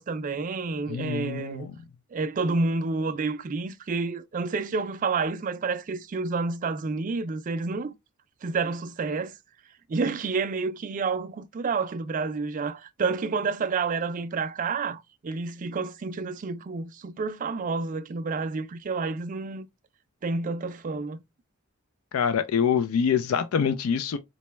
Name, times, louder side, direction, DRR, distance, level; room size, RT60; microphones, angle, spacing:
voice 1, 0.0-1.7 2.1-7.9 8.4-9.3 9.9-19.7 20.2-21.2, right 4 dB, 40° right, 0.4 m, -29 dB
voice 2, 0.9-1.7 22.1-24.2, left 7 dB, 85° left, 0.4 m, -25 dB
4.1 x 2.2 x 3.0 m
head